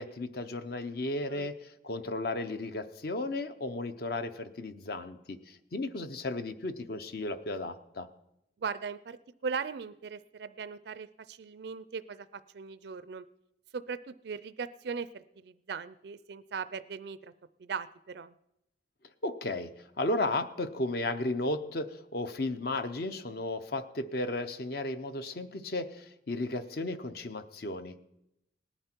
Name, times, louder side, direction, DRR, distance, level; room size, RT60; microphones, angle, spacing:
voice 1, 0.0-8.1 19.2-28.0, left 2 dB, 55° left, 11 dB, 0.7 m, -34 dB
voice 2, 8.6-9.2 9.4-13.2 13.7-17.3 17.6-18.3, right 5 dB, 60° right, 15 dB, 0.4 m, -39 dB
18.5 x 10.0 x 4.5 m, 0.85 s
head